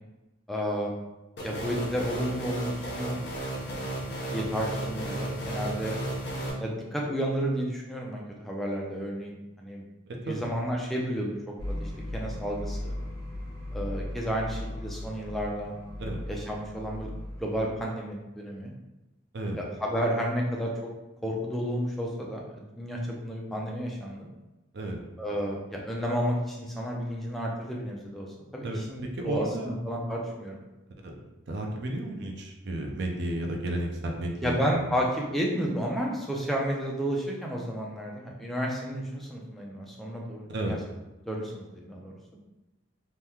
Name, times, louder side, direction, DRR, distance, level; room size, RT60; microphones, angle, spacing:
voice 1, 0.5-0.9 1.4-3.2 3.6-3.9 4.2-6.0 6.6-9.8 10.2-12.9 13.7-15.8 16.3-17.1 17.4-18.7 19.5-20.7 21.2-24.3 25.2-28.3 28.5-30.6 34.4-40.8 41.3-42.1, equal, ahead, -2 dB, 0.4 m, -31 dB
sound 1, 1.4-6.5, right 1 dB, 55° left, 0.6 m, -34 dB
voice 2, 10.1-10.4 16.0-16.2 19.3-19.6 24.7-25.0 28.6-29.7 31.0-31.1 31.5-34.6 40.5-40.8, right 1 dB, 55° right, 1 dB, 0.5 m, -32 dB
sound 2, 11.6-17.6, left 1 dB, 80° right, 0.9 m, -37 dB
2.8 x 2.1 x 3.5 m, 1.0 s
head